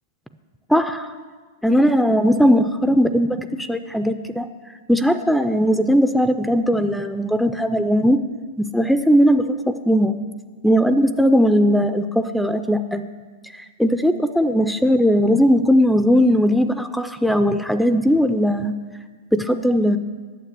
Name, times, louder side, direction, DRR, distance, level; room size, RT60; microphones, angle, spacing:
voice 1, 0.7-1.1 1.6-4.5 4.9-8.2 8.6-9.5 9.9-10.1 10.6-13.0 13.5-18.7 19.3-20.0, equal, ahead, 9 dB, 0.3 m, -18 dB
9.2 x 7.3 x 7.4 m, 1.5 s
hypercardioid pair, 140°, 0 cm